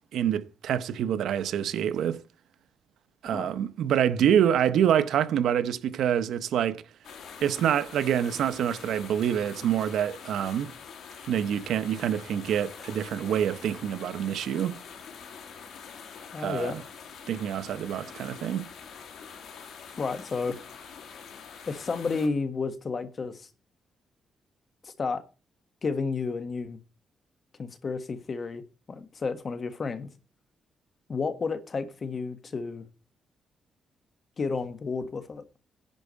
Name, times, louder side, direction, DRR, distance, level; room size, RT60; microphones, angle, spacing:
voice 1, 0.1-2.2 3.2-6.8 7.4-10.7 11.3-14.8 16.4-16.8 17.3-18.6, right 9 dB, 85° right, 0.8 m, -26 dB
sound 1, 7.0-22.3, left 6 dB, 80° left, 2.5 m, -45 dB
voice 2, 16.3-16.8 20.0-20.6 21.7-23.5 24.8-25.2 25.8-26.8 27.6-28.6 28.9-30.1 31.1-32.8 34.4-35.4, left 4 dB, 40° left, 1.5 m, -31 dB
11.0 x 4.6 x 8.2 m
cardioid pair, 105°, 0 cm